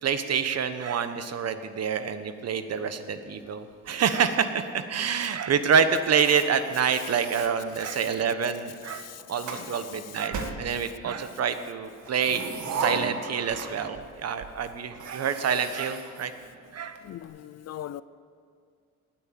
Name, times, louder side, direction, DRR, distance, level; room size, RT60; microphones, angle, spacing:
voice 1, 0.0-12.4 12.7-16.3 16.7-17.0, right 7 dB, 55° right, 1.2 m, -27 dB
sound 1, 6.0-8.3 9.0-9.7 10.3-11.2 12.0-14.1 14.4-14.5 14.9-17.0, right 4 dB, 75° right, 1.9 m, -37 dB
voice 2, 8.9-9.9 17.0-18.0, left 12 dB, 60° left, 0.6 m, -41 dB
19.0 x 9.1 x 7.5 m
cardioid pair, 90°, 30 cm